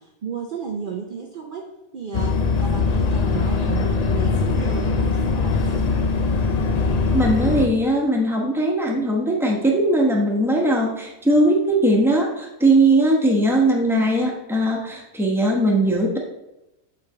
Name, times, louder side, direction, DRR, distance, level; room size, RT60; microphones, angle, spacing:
voice 1, 0.0-5.9, right 5 dB, 55° right, 3 dB, 0.6 m, -33 dB
sound 1, 2.1-7.7, left 4 dB, 75° left, 0.3 m, -21 dB
voice 2, 7.1-16.2, right 1 dB, ahead, -1 dB, 0.9 m, -19 dB
8.0 x 3.3 x 4.9 m, 0.92 s
omnidirectional pair, 1.5 m